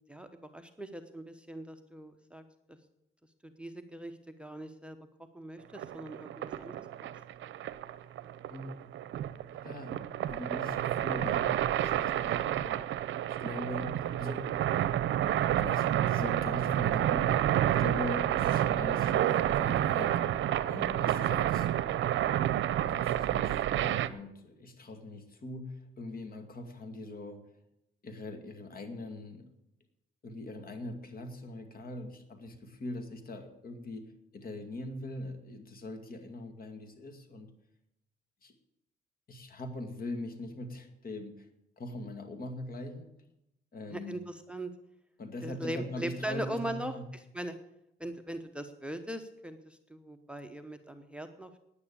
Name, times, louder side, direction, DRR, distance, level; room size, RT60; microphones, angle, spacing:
voice 1, 0.5-2.4 3.4-5.0 5.3-6.8 43.9-44.7 45.4-47.5 48.0-51.6, right 1 dB, 5° right, 9 dB, 1.0 m, -40 dB
sound 1, 5.8-24.1, right 12 dB, 70° right, 0.7 m, -29 dB
voice 2, 8.5-9.0 9.5-9.9 10.3-13.0 13.3-14.4 15.6-17.5 17.8-20.2 20.7-21.8 22.5-27.4 28.0-29.5 30.2-37.5 38.4-38.5 39.3-41.5 41.8-43.1 43.7-44.2 45.2-47.1, left 1 dB, 45° left, 6 dB, 2.2 m, -41 dB
9.7 x 9.6 x 8.5 m, 0.84 s
cardioid pair, 90°, 20 cm